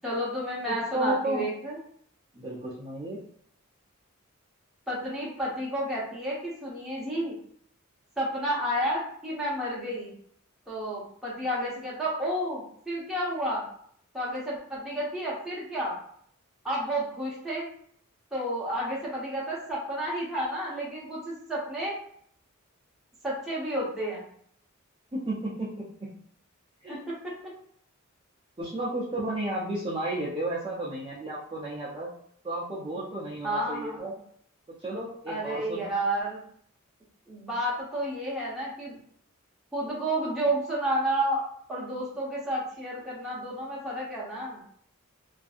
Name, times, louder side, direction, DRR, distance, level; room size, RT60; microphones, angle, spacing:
voice 1, 0.0-1.8 4.9-7.4 8.2-10.1 10.7-13.6 14.1-16.0 16.6-17.7 18.3-22.0 23.2-24.2 26.9-27.3 33.4-34.0 35.3-36.4 37.3-39.0 39.7-44.6, right 1 dB, ahead, -7 dB, 0.8 m, -31 dB
voice 2, 0.7-1.4 2.3-3.2 25.1-26.1 26.8-27.1 28.6-32.1 32.4-34.2 34.8-35.9, right 1 dB, 20° right, -7 dB, 0.4 m, -33 dB
2.6 x 2.5 x 2.4 m, 0.64 s
head